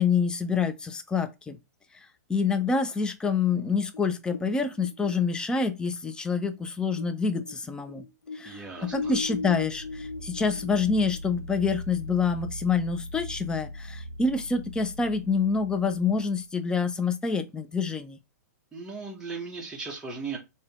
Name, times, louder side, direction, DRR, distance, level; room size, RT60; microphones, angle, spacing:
voice 1, 0.0-1.6 2.3-8.0 8.3-8.6 8.9-18.2, left 5 dB, 10° left, 0.4 m, -27 dB
sound 1, 3.6-7.1 7.4-11.5, left 4 dB, 90° left, 0.8 m, -37 dB
voice 2, 8.4-9.2 18.7-20.4, right 4 dB, 10° right, 0.9 m, -37 dB
sound 2, 8.7-16.4, equal, 75° right, 0.6 m, -41 dB
3.5 x 2.7 x 3.4 m
hypercardioid pair, 125°, 10 cm